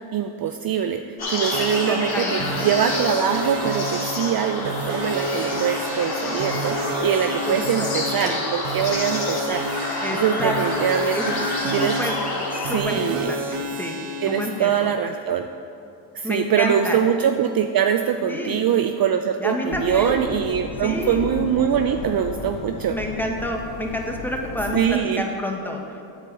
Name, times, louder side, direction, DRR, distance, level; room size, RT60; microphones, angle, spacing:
voice 1, 0.1-1.0 1.3-11.2 11.7-12.0 12.6-13.3 14.2-15.5 16.1-23.0 24.7-25.2, right 8 dB, 45° right, 7 dB, 0.5 m, -23 dB
sound 1, 1.2-12.8, left 2 dB, 50° left, 2.2 m, -29 dB
sound 2, 1.4-14.7, right 1 dB, 75° right, 1.2 m, -30 dB
voice 2, 1.9-2.7 7.4-7.9 8.2-8.4 10.0-10.9 11.1-12.2 12.5-14.0 14.3-14.9 16.2-17.0 18.3-18.6 19.4-20.3 20.8-21.3 21.6-21.7 22.9-25.8, equal, 5° left, 1 dB, 1.3 m, -29 dB
sound 3, 19.7-25.0, left 8 dB, 75° left, 0.7 m, -35 dB
8.9 x 4.5 x 6.9 m, 2.8 s
supercardioid pair, 60°, 50 cm